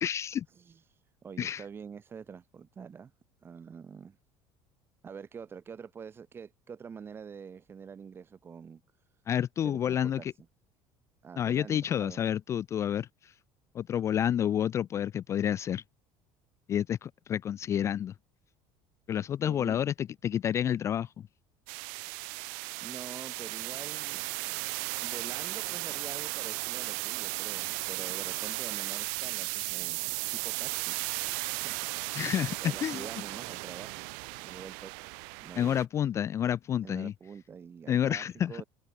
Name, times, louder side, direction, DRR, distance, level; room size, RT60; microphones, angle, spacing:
voice 1, 0.0-0.5 1.4-1.6 9.3-10.3 11.4-13.3 13.7-15.8 16.7-18.1 19.1-21.1 32.1-33.0 35.6-37.1 37.9-38.6, left 9 dB, 25° left, 0.4 m, -29 dB
voice 2, 0.5-3.1 3.4-4.2 5.0-8.8 9.6-10.3 11.2-12.2 19.4-19.8 22.8-24.2 25.0-31.0 31.3-34.1 34.4-35.1 35.4-35.8 36.8-38.6, right 6 dB, 20° right, 4.6 m, -46 dB
sound 1, 21.7-35.8, right 40 dB or more, 90° right, 1.8 m, -36 dB
cardioid pair, 170°, 11 cm